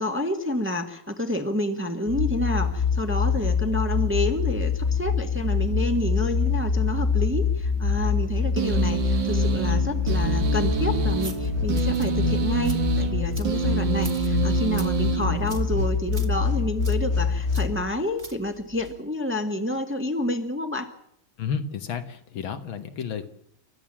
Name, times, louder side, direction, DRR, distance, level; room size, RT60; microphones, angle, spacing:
voice 1, 0.0-20.9, left 1 dB, 5° right, 6 dB, 1.3 m, -29 dB
sound 1, 2.1-17.8, left 5 dB, 45° left, 2.2 m, -25 dB
sound 2, 8.6-16.0, right 8 dB, 65° right, 2.2 m, -28 dB
sound 3, 11.0-19.0, right 3 dB, 40° right, 2.1 m, -44 dB
voice 2, 21.4-23.3, left 7 dB, 75° left, 8 dB, 2.2 m, -31 dB
29.5 x 13.0 x 7.5 m, 0.76 s
omnidirectional pair, 2.2 m